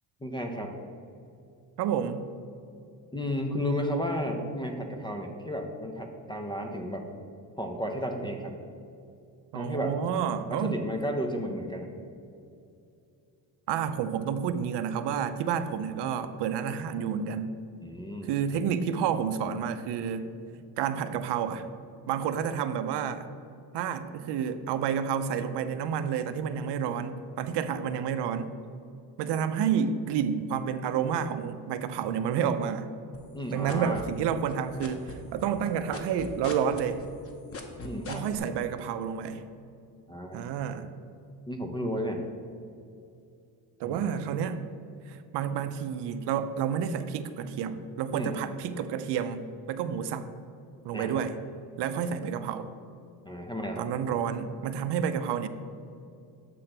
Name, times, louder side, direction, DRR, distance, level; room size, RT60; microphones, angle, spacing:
voice 1, 0.2-0.7 3.1-7.0 7.6-8.5 9.5-9.9 10.5-11.9 17.8-18.3 33.3-34.0 37.8-38.2 40.1-40.4 41.5-42.3 43.8-44.0 48.1-48.3 50.9-51.2 53.3-53.9, equal, 10° left, 3 dB, 0.4 m, -33 dB
voice 2, 1.8-2.2 9.5-10.8 13.7-17.5 18.2-20.3 20.8-21.7 22.1-23.3 23.7-28.5 29.2-32.9 33.5-37.0 38.1-39.4 40.3-40.9 43.8-44.6 45.1-50.3 50.8-51.4 51.8-52.7 53.8-55.5, right 8 dB, 65° right, 10 dB, 0.5 m, -30 dB
sound 1, 33.1-34.5 34.8-38.4, left 3 dB, 30° left, 0.8 m, -40 dB
7.6 x 3.3 x 5.8 m, 2.5 s
cardioid pair, 120°, 46 cm